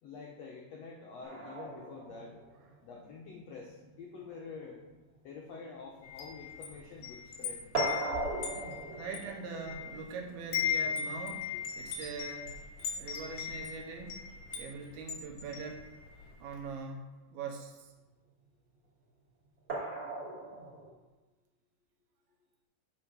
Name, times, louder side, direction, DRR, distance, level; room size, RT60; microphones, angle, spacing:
voice 1, 0.0-2.4 2.8-4.8 5.2-7.6 11.5-11.6, left 4 dB, 80° left, -1 dB, 1.4 m, -47 dB
sound 1, 1.2-7.0 7.2-14.2 15.6-15.7 16.1-16.2 19.7-20.9, right 2 dB, 25° right, 2.8 m, -41 dB
Wind chime, 6.0-10.1 10.4-16.3, left 7 dB, 55° left, 1.5 m, -38 dB
voice 2, 8.9-11.5 11.8-12.6 13.0-14.2 14.6-15.8 16.4-17.9, right 4 dB, 85° right, 1 dB, 2.8 m, -42 dB
8.2 x 4.9 x 6.1 m, 1.2 s
omnidirectional pair, 4.3 m